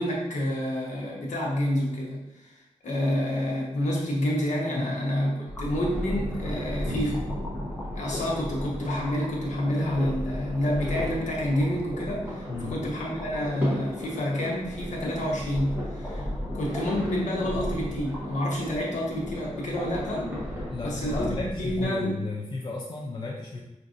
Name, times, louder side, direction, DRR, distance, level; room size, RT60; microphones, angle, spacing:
voice 1, 0.0-7.3 7.9-16.3 16.5-20.3 20.8-22.2, equal, 65° left, -3 dB, 1.0 m, -28 dB
sound 1, 5.5-21.8, equal, 15° left, 0.9 m, -37 dB
sound 2, 5.8-20.7, left 1 dB, 15° right, 1.1 m, -37 dB
voice 2, 20.7-23.6, left 3 dB, 35° left, -2 dB, 0.4 m, -34 dB
5.1 x 2.5 x 2.5 m, 0.96 s
wide cardioid pair, 150°, 13 cm